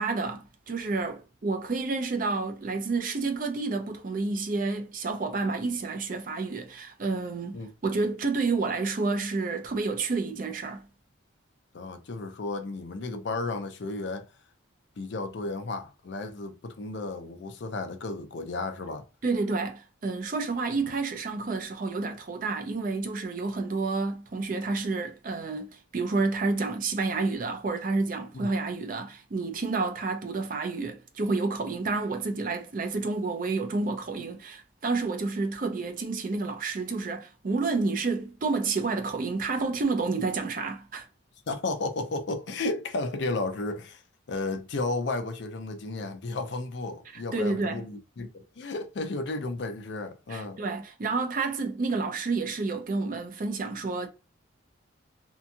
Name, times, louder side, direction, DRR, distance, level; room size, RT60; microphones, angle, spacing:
voice 1, 0.0-10.9 19.2-41.1 47.1-47.8 50.3-54.1, right 3 dB, 40° right, 0.4 m, -30 dB
voice 2, 11.7-14.3 15.0-19.0 28.3-28.5 41.5-44.0 44.3-50.6, left 3 dB, 55° left, 0.5 m, -33 dB
2.8 x 2.6 x 2.3 m
head